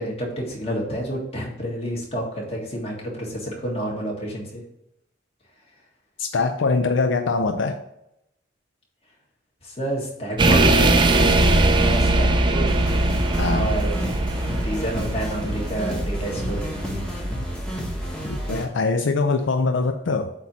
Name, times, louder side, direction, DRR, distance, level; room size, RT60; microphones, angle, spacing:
voice 1, 0.0-4.6 9.6-12.8 13.4-14.1 14.5-17.1, right 1 dB, 30° left, -2 dB, 1.8 m, -29 dB
voice 2, 6.2-7.8 13.4-13.7 18.3-20.3, left 4 dB, 75° left, 6 dB, 0.5 m, -23 dB
sound 1, 10.4-17.4 17.7-18.1, right 2 dB, 25° right, 0.4 m, -21 dB
sound 2, 12.7-18.7, equal, 5° left, 1.0 m, -30 dB
8.0 x 2.9 x 6.0 m, 0.81 s
head